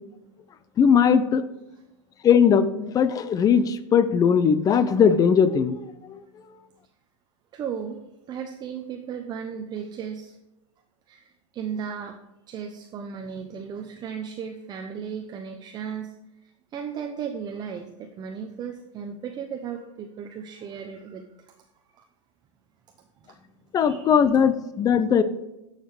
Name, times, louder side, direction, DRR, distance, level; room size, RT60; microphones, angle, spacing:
voice 1, 0.8-1.4 2.2-6.2 23.7-25.2, left 7 dB, 25° left, 14 dB, 0.6 m, -19 dB
voice 2, 7.5-10.4 11.1-12.2 12.5-16.1 16.4-21.5 21.9-22.0 23.7-24.2, right 7 dB, 25° right, 5 dB, 0.8 m, -35 dB
9.9 x 6.7 x 4.9 m, 0.96 s
supercardioid pair, 130°, 15 cm